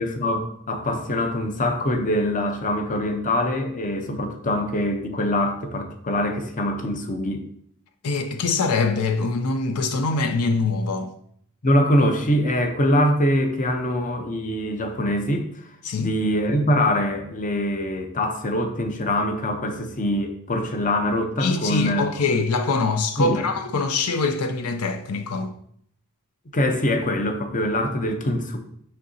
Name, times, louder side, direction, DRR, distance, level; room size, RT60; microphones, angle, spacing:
voice 1, 0.0-7.4 11.6-15.5 16.0-22.1 23.2-23.4 26.5-28.6, left 1 dB, 35° left, 0.7 m, -23 dB
voice 2, 8.0-11.1 15.8-16.2 21.4-25.5, left 3 dB, 80° left, 0.5 m, -23 dB
6.5 x 5.7 x 2.7 m
head